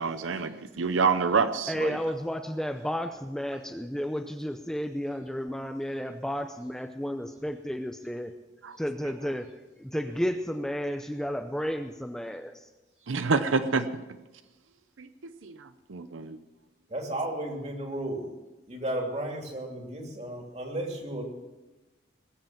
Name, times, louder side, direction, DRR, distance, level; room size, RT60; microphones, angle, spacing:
voice 1, 0.0-1.9 8.6-8.8 13.1-13.9 15.0-15.1 15.4-15.6 15.9-16.4, right 4 dB, 90° right, 11 dB, 0.7 m, -27 dB
voice 2, 1.7-8.3 8.8-9.5 9.8-12.7, equal, 5° left, 6 dB, 0.5 m, -32 dB
voice 3, 16.9-18.3 18.7-21.2, right 1 dB, 35° right, 1 dB, 2.8 m, -34 dB
20.5 x 8.0 x 7.3 m, 1.1 s
head